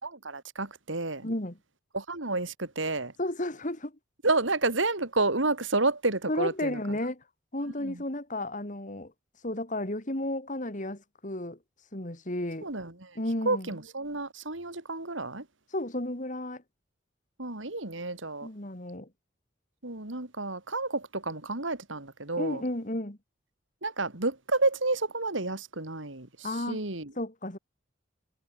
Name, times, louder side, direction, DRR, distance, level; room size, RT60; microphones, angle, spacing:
voice 1, 0.0-1.2 1.9-3.1 4.2-6.8 7.8-8.0 12.6-13.2 13.5-15.5 17.4-18.5 19.8-22.6 23.8-27.1, right 2 dB, 80° right, 3.6 m, -30 dB
voice 2, 1.2-1.6 3.2-3.9 6.3-7.2 7.5-9.1 9.4-11.6 11.9-12.7 13.1-13.7 15.7-16.6 18.4-19.1 22.4-23.2 26.4-26.8 27.2-27.6, left 1 dB, 40° left, 3.1 m, -33 dB
head